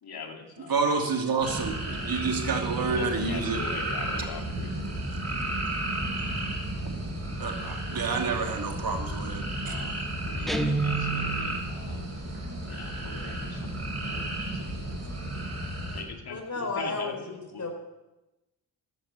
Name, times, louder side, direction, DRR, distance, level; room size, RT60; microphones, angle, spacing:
voice 1, 0.0-0.7 2.9-5.4 9.6-12.1 12.6-15.0 15.9-16.4 16.8-17.6, left 4 dB, 65° left, 3 dB, 2.8 m, -41 dB
voice 2, 0.7-3.6 7.4-9.7, right 4 dB, 55° right, 3 dB, 2.8 m, -29 dB
sound 1, 1.4-16.0, right 1 dB, 35° right, 5.4 m, -33 dB
Guitar, 10.5-11.6, right 3 dB, ahead, 1.3 m, -28 dB
voice 3, 16.3-17.7, left 3 dB, 45° left, 3 dB, 4.7 m, -34 dB
14.0 x 10.0 x 6.9 m, 1.0 s
supercardioid pair, 55°, 41 cm